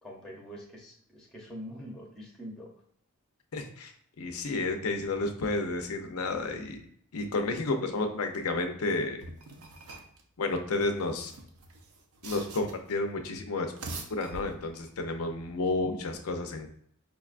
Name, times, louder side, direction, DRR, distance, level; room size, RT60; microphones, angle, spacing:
voice 1, 0.0-2.7, equal, 5° left, -2 dB, 0.6 m, -44 dB
voice 2, 3.5-6.8 7.1-9.2 10.4-11.3 12.2-13.7 14.1-16.7, left 2 dB, 75° left, 5 dB, 0.5 m, -31 dB
sound 1, 9.2-10.2 11.1-12.9 13.6-14.9, right 2 dB, 75° right, 0.5 m, -44 dB
5.0 x 2.2 x 2.4 m, 0.66 s
head